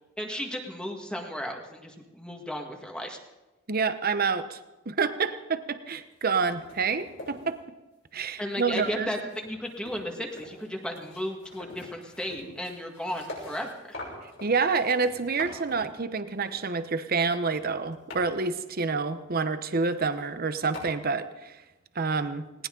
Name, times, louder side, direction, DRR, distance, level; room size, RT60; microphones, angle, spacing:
voice 1, 0.2-3.2 8.4-14.0, equal, 5° left, 2 dB, 1.8 m, -35 dB
voice 2, 3.7-4.6 4.9-7.6 8.1-9.1 14.4-21.6 21.9-22.5, right 4 dB, 45° right, 11 dB, 0.9 m, -28 dB
sound 1, 6.0-6.2 6.5-7.6 8.3-9.0 9.3-15.9 16.4-16.6 17.4-18.3 19.7-19.8 20.1-20.3 20.7-20.8, left 1 dB, 65° left, 6.5 m, -44 dB
19.5 x 18.5 x 3.9 m, 1.1 s
head